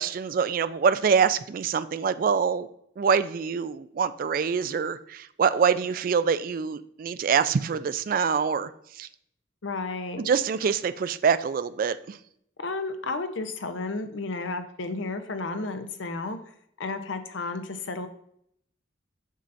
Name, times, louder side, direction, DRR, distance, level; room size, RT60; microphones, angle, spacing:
voice 1, 0.0-2.7 3.0-8.7 9.0-9.1 10.2-12.2, right 6 dB, 45° right, 13 dB, 0.3 m, -25 dB
voice 2, 9.6-10.3 12.6-16.4 16.8-18.1, left 3 dB, 85° left, 8 dB, 0.7 m, -32 dB
7.4 x 5.6 x 2.6 m, 0.70 s
head